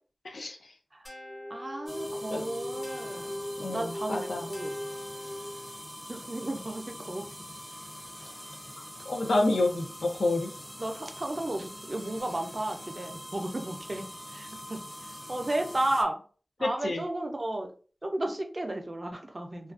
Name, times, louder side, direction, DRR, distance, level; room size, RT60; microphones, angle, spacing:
voice 1, 0.2-0.6 2.3-2.4 3.6-4.5 8.7-10.5 16.6-17.0, left 2 dB, 90° left, 4 dB, 0.4 m, -29 dB
sound 1, 1.1-5.8, left 1 dB, 50° left, 0.7 m, -39 dB
voice 2, 1.5-3.4 3.7-4.7 6.1-7.3 10.8-14.8 15.3-16.2 16.6-17.7 18.0-19.7, right 1 dB, 40° right, 5 dB, 0.4 m, -33 dB
sound 2, 1.9-16.0, equal, 10° left, 0.6 m, -44 dB
2.4 x 2.2 x 2.4 m, 0.40 s
wide cardioid pair, 50°, 0 cm